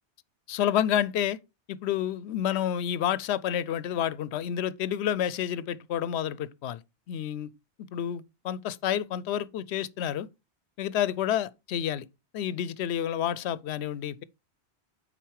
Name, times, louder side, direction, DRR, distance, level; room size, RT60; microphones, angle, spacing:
voice 1, 0.5-1.4 1.7-6.8 7.1-7.5 7.9-10.3 10.8-12.1 12.3-14.2, left 10 dB, 70° left, 0.8 m, -29 dB
9.1 x 4.0 x 4.6 m
omnidirectional pair, 1.2 m